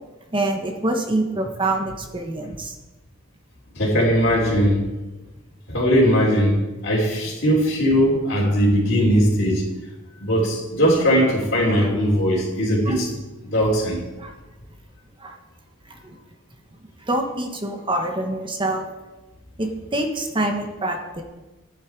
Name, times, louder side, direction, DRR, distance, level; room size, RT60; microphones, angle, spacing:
voice 1, 0.3-2.7 11.8-11.9 12.9-13.0 14.2-14.3 15.2-15.3 15.9-16.2 17.0-18.8 19.6-21.2, right 2 dB, 25° right, 3 dB, 1.1 m, -26 dB
voice 2, 3.7-4.8 5.7-9.6 10.2-14.0, equal, 50° left, -9 dB, 3.0 m, -19 dB
14.0 x 9.5 x 4.6 m, 1.1 s
head